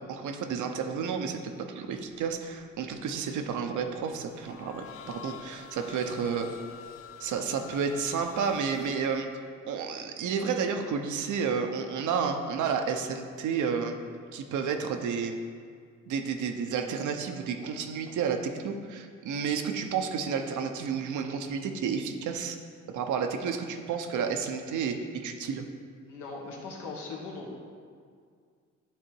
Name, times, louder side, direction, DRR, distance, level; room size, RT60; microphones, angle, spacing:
voice 1, 0.1-6.5 7.2-9.3 9.6-14.0 14.3-15.4 16.1-22.6 22.9-25.7, right 6 dB, 75° right, 5 dB, 0.8 m, -31 dB
sound 1, 1.8-2.3 2.6-3.2 3.5-9.2, left 8 dB, 50° left, 0.6 m, -47 dB
voice 2, 26.1-27.6, left 3 dB, 90° left, -2 dB, 1.5 m, -39 dB
11.0 x 3.7 x 4.6 m, 2.1 s
cardioid pair, 90°, 30 cm